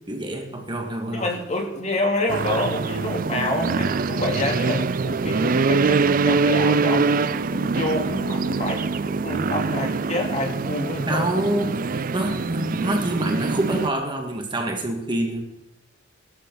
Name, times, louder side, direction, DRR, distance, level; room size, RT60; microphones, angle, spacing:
voice 1, 0.1-1.3 11.1-15.5, right 1 dB, 25° right, 3 dB, 2.0 m, -26 dB
voice 2, 1.1-7.1 7.5-11.3, left 1 dB, 35° left, 1 dB, 2.9 m, -27 dB
sound 1, 2.3-13.9, right 4 dB, 45° right, 0.5 m, -24 dB
22.0 x 13.0 x 4.1 m, 0.86 s
head